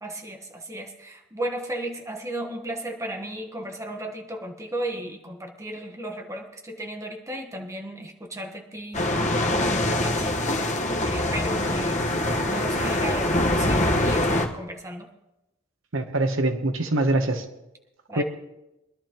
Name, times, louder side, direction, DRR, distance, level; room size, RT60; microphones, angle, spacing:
voice 1, 0.0-9.0 9.4-12.0 12.4-15.1 18.1-18.2, right 1 dB, 15° right, 3 dB, 1.3 m, -35 dB
sound 1, 8.9-14.5, left 1 dB, 35° left, 1.3 m, -24 dB
voice 2, 15.9-17.5 18.1-18.2, right 2 dB, 70° right, 7 dB, 1.0 m, -24 dB
23.0 x 11.5 x 3.0 m, 0.95 s
head